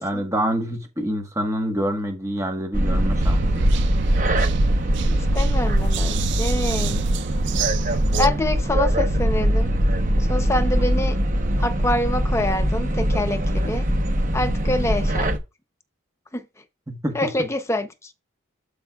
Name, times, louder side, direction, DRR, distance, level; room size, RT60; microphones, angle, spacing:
voice 1, 0.0-3.8 14.5-14.6 16.9-17.3, equal, 15° right, 1.3 m, -27 dB
sound 1, 2.7-15.4, equal, 35° right, 0.9 m, -21 dB
sound 2, 3.2-8.3, right 7 dB, 55° right, 0.4 m, -29 dB
voice 2, 5.1-7.1 8.2-9.7 10.2-11.2 11.6-13.9 14.3-15.3 16.3-16.4 17.1-18.1, left 1 dB, 15° left, 0.7 m, -26 dB
12.0 x 5.0 x 2.3 m
head